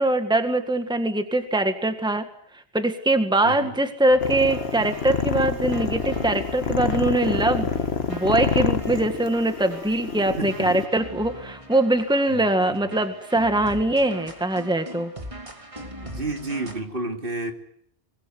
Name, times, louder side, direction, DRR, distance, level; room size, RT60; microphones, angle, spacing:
voice 1, 0.0-2.3 2.5-7.7 8.1-15.1, right 1 dB, 5° right, 7 dB, 1.8 m, -22 dB
voice 2, 3.4-3.8 10.4-10.9 12.3-13.0 16.0-17.5, right 2 dB, 55° right, 4 dB, 2.9 m, -31 dB
sound 1, 4.1-16.8, right 1 dB, 30° right, 2.8 m, -42 dB
sound 2, 4.2-10.9, left 5 dB, 70° left, 1.6 m, -27 dB
24.0 x 21.5 x 9.6 m, 0.68 s
omnidirectional pair, 1.1 m